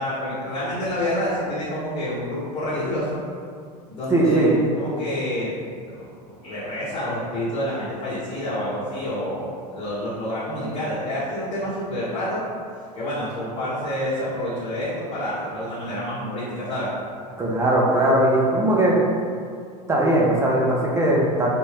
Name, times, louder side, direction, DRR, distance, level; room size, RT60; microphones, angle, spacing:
voice 1, 0.0-3.2 3.9-5.5 6.0-12.4 12.9-16.9, left 1 dB, 25° left, -12 dB, 1.0 m, -28 dB
voice 2, 4.1-4.5 17.4-19.0 19.9-21.5, right 1 dB, 15° right, -3 dB, 0.6 m, -19 dB
2.6 x 2.1 x 3.3 m, 2.2 s
hypercardioid pair, 90°, 21 cm